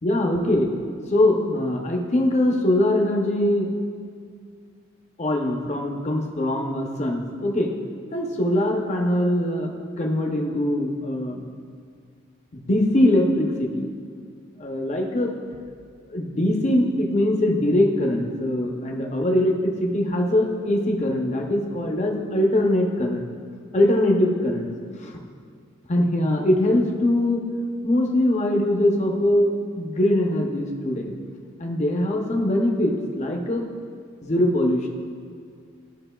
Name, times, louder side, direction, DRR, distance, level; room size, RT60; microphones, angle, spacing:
voice 1, 0.0-0.7 1.1-3.7 5.2-7.7 8.1-11.4 12.5-13.9 14.6-15.3 16.1-23.3 23.7-24.7 25.0-25.2 25.9-27.4 27.8-31.1 31.6-33.7 34.2-34.9, left 1 dB, 35° left, 0 dB, 0.6 m, -22 dB
12.0 x 5.2 x 2.2 m, 2.2 s
head